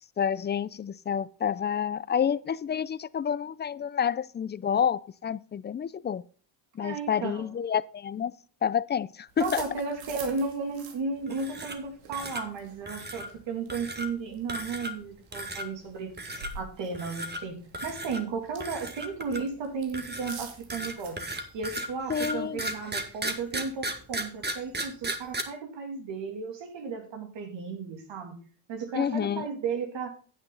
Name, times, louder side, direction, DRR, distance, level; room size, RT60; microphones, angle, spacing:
voice 1, 0.2-6.2 6.8-8.3 8.6-9.6 22.1-22.6 28.9-29.5, left 8 dB, 25° left, 0.4 m, -29 dB
voice 2, 6.8-7.5 9.4-16.1 16.5-21.2 21.5-28.3 28.7-30.1, right 4 dB, 70° right, 2.9 m, -34 dB
sound 1, 9.3-24.2, right 5 dB, 85° right, 2.3 m, -50 dB
sound 2, 11.3-11.9 12.1-12.4 12.9-13.3 13.7-14.1 14.5-15.0 15.3-15.7 16.2-16.5 16.9-17.4 17.7-18.2 18.6-19.5 19.9-25.4, right 1 dB, 20° right, 1.7 m, -35 dB
9.5 x 8.5 x 3.9 m
cardioid pair, 95°, 45 cm